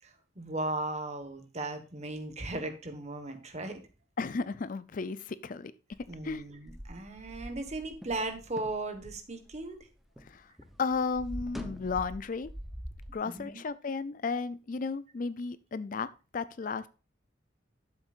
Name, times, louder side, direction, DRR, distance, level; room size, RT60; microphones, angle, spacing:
voice 1, 0.0-3.8 6.1-9.8 13.2-13.6, right 2 dB, 35° right, 1.4 m, -37 dB
voice 2, 4.2-5.7 6.2-6.4 10.2-10.5 10.8-12.5 13.1-16.1 16.3-16.9, left 4 dB, 45° left, 0.4 m, -34 dB
sound 1, 5.9-10.3 10.6-13.1, equal, ahead, 0.8 m, -44 dB
12.0 x 7.2 x 2.5 m
head